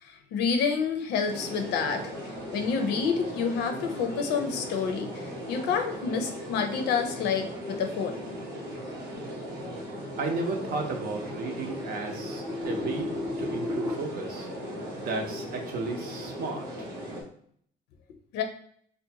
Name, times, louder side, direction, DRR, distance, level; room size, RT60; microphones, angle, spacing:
voice 1, 0.0-2.0 2.5-8.2 18.3-18.4, left 6 dB, 85° left, 5 dB, 0.5 m, -28 dB
sound 1, 1.2-17.2, equal, 80° right, 1.0 m, -38 dB
sound 2, 9.3-13.9, left 2 dB, 10° right, 0.6 m, -36 dB
voice 2, 10.2-13.1 13.4-14.5 15.0-16.9, right 3 dB, 60° right, 3 dB, 0.6 m, -34 dB
2.5 x 2.1 x 2.8 m, 0.62 s
cardioid pair, 110°, 17 cm